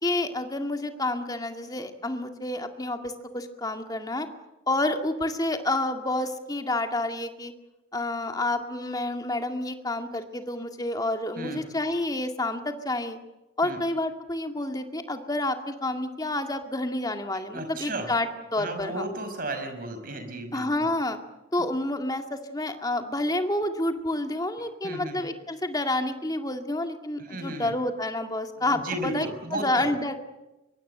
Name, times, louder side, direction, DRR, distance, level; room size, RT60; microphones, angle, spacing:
voice 1, 0.0-4.3 4.7-7.5 7.9-13.2 13.6-19.0 20.5-21.2 21.5-30.1, left 2 dB, 20° left, 6 dB, 2.1 m, -29 dB
voice 2, 17.5-18.1 18.6-20.9 24.8-25.2 27.2-27.7 28.6-29.9, right 1 dB, 45° right, 7 dB, 5.6 m, -34 dB
24.5 x 22.5 x 7.9 m, 1.0 s
head